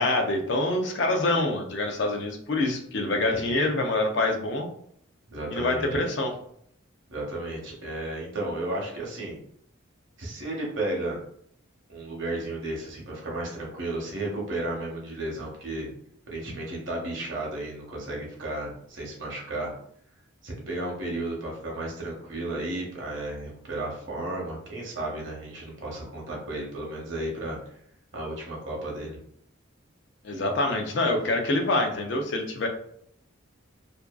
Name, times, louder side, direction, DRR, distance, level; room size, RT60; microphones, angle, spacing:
voice 1, 0.0-4.7 5.5-6.3 30.2-32.7, left 2 dB, 55° left, 3 dB, 0.4 m, -26 dB
voice 2, 5.3-6.0 7.1-9.4 10.2-11.2 11.9-15.9 16.3-19.7 20.4-27.6 28.1-29.2, right 2 dB, 65° right, -2 dB, 0.8 m, -33 dB
2.6 x 2.2 x 2.3 m, 0.67 s
head